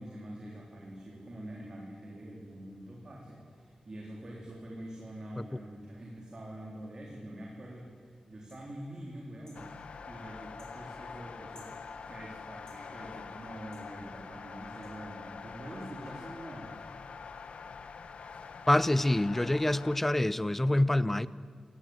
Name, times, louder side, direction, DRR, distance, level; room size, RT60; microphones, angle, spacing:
voice 1, 0.0-9.7 10.1-11.7 12.1-16.8, right 1 dB, 35° right, 3.8 m, -45 dB
sound 1, 8.5-8.6 9.4-9.6 10.6-10.7 11.5-11.8 12.7-12.8 13.7-13.9 14.8-14.9, left 2 dB, 30° left, 5.4 m, -58 dB
sound 2, 9.5-20.0, left 5 dB, 75° left, 1.1 m, -45 dB
voice 2, 18.7-21.3, left 1 dB, 10° left, 0.6 m, -26 dB
26.5 x 18.5 x 8.0 m
wide cardioid pair, 170°, 2 cm